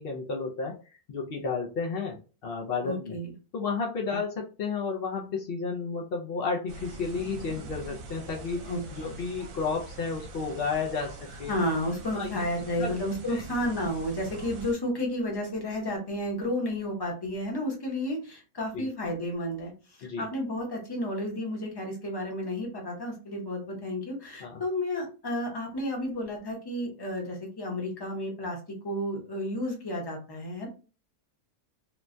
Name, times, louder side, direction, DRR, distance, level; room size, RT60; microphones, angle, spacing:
voice 1, 0.0-3.2 3.5-11.5 12.2-12.4 12.8-12.9 13.3-13.4 18.7-18.9 20.0-20.3 24.4-24.6, left 4 dB, 90° left, 0 dB, 0.5 m, -32 dB
voice 2, 2.8-3.3 8.7-9.2 11.5-28.6 28.8-30.7, left 1 dB, 25° left, 0 dB, 0.6 m, -32 dB
sound 1, 6.7-14.7, right 2 dB, 70° right, 1.1 m, -43 dB
3.0 x 2.2 x 2.5 m, 0.34 s
omnidirectional pair, 1.6 m